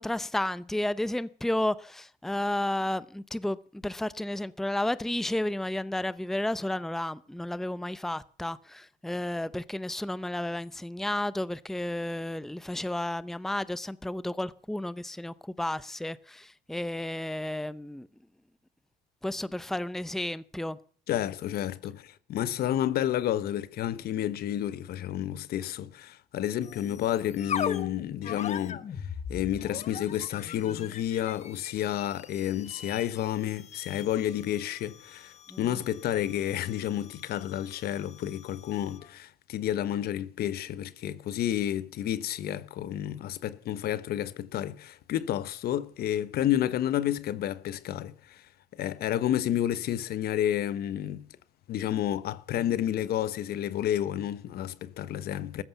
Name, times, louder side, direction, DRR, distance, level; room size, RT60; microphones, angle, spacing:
voice 1, 0.0-18.1 19.2-20.8 35.5-35.8, left 1 dB, ahead, 0.7 m, -32 dB
voice 2, 21.1-28.8 29.3-48.4 48.7-51.2 51.7-55.6, left 11 dB, 70° left, 1.1 m, -30 dB
sound 1, 26.6-39.1, left 8 dB, 40° left, 1.1 m, -40 dB
14.5 x 13.5 x 7.1 m
cardioid pair, 110°, 17 cm